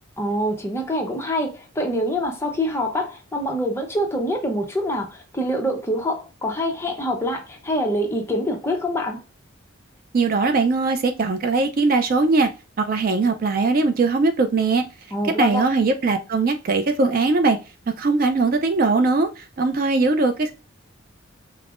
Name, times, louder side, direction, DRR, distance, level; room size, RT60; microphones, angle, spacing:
voice 1, 0.2-9.2 15.1-15.6, equal, 10° left, 0.6 m, -25 dB
voice 2, 10.1-12.5 12.8-14.9 15.4-17.6 18.0-20.5, right 3 dB, 45° right, 0.4 m, -20 dB
5.1 x 2.0 x 2.4 m
head